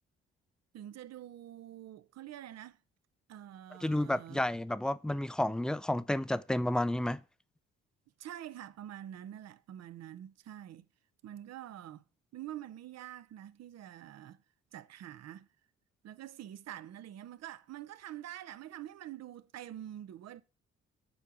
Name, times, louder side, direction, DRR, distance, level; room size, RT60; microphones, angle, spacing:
voice 1, 0.7-2.8 3.3-4.4 8.2-10.9 11.2-12.0 12.3-14.4 14.7-15.5 16.0-20.4, right 12 dB, 55° right, 0.6 m, -46 dB
voice 2, 3.8-7.2, left 1 dB, 5° left, 0.3 m, -31 dB
7.3 x 4.6 x 4.9 m
hypercardioid pair, 50°, 31 cm